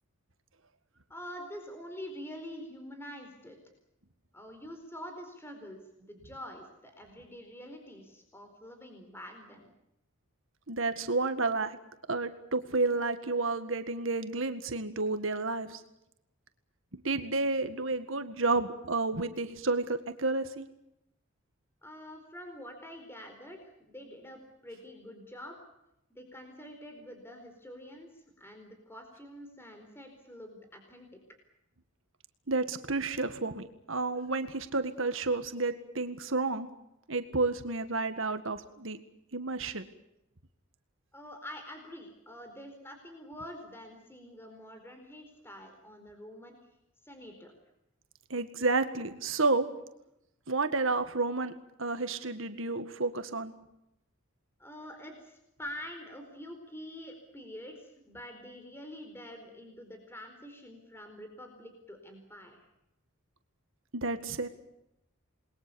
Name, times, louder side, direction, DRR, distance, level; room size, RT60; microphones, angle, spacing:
voice 1, 1.1-3.6 4.3-9.7 21.8-25.6 26.1-31.2 41.1-46.6 47.0-47.5 54.6-62.6, equal, 10° left, 5 dB, 4.4 m, -46 dB
voice 2, 10.7-11.8 12.1-15.8 17.0-20.7 32.5-36.7 37.1-39.0 39.3-39.9 48.3-49.7 50.5-51.5 51.8-53.5 63.9-64.5, right 3 dB, 65° right, 9 dB, 1.8 m, -31 dB
28.5 x 21.5 x 7.1 m, 0.84 s
head